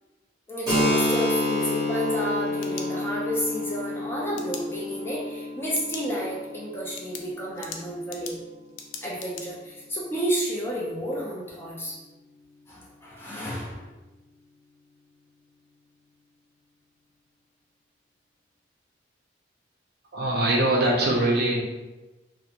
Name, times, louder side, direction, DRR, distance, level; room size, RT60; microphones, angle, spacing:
voice 1, 0.5-8.4 9.0-12.0 12.7-13.9, equal, 10° left, -5 dB, 0.4 m, -31 dB
Keyboard (musical), 0.7-8.0, left 1 dB, 25° right, 1.1 m, -29 dB
sound 1, 2.4-3.4 4.4-4.6 5.7-6.1 6.5-6.6 7.0-9.4, left 6 dB, 90° left, 0.3 m, -40 dB
voice 2, 20.1-21.6, right 1 dB, 55° right, -2 dB, 0.5 m, -22 dB
2.4 x 2.1 x 2.8 m, 1.1 s
head